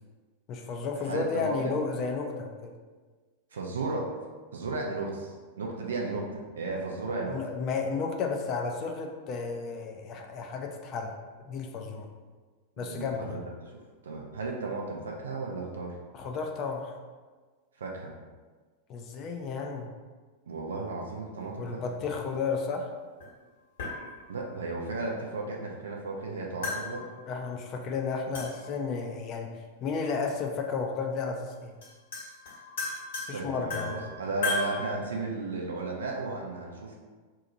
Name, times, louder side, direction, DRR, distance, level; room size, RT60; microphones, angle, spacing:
voice 1, 0.5-2.7 7.3-11.1 11.5-12.1 12.8-13.4 16.1-16.9 18.9-19.9 21.6-22.9 27.3-29.5 29.8-31.8 33.3-34.1, left 5 dB, 40° left, 3 dB, 0.5 m, -33 dB
voice 2, 1.1-1.8 3.5-4.1 4.5-7.4 12.8-16.0 17.8-18.1 20.5-21.8 24.3-27.1 33.3-37.0, right 3 dB, 70° right, 0 dB, 0.4 m, -34 dB
sound 1, 23.2-23.3 23.8-24.5 26.6-27.5 28.3-28.9 30.3-30.4 31.5-31.6 31.8-34.8, left 3 dB, 65° left, 1.3 m, -36 dB
2.8 x 2.5 x 3.9 m, 1.4 s
figure-of-eight pair, 95°, 0 cm